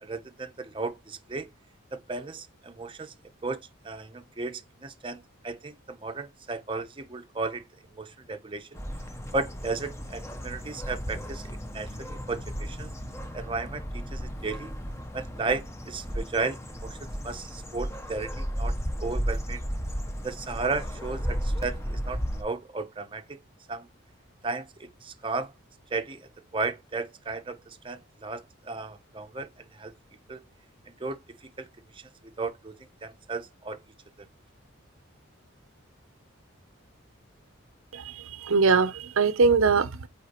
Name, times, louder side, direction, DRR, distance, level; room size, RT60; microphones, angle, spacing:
voice 1, 0.0-1.5 2.1-3.1 3.4-3.6 3.8-7.6 7.9-8.8 9.3-11.4 11.7-12.9 13.3-14.7 15.1-17.0 17.2-18.7 19.0-19.6 20.2-23.2 23.7-23.9 24.4-25.5 25.9-26.2 26.5-27.6 27.8-29.5 29.8-29.9 30.3-30.4 31.0-31.2 32.4-32.7 33.0-33.8, right 3 dB, 25° right, 0.6 m, -34 dB
sound 1, 8.7-22.4, equal, 15° left, 0.6 m, -34 dB
voice 2, 37.9-40.1, right 4 dB, 75° right, 0.6 m, -22 dB
8.1 x 4.4 x 2.9 m
head